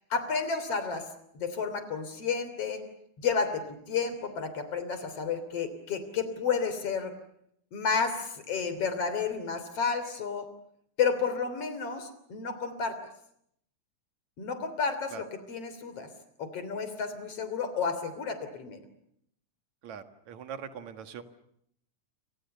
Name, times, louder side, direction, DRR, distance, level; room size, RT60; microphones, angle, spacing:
voice 1, 0.1-1.1 1.3-2.8 3.2-7.1 7.7-10.5 11.0-13.0 14.4-16.1 16.4-18.8, left 5 dB, 50° left, 11 dB, 4.1 m, -31 dB
voice 2, 19.8-21.2, right 7 dB, 70° right, 9 dB, 3.0 m, -42 dB
29.5 x 26.0 x 6.8 m, 0.72 s
omnidirectional pair, 3.5 m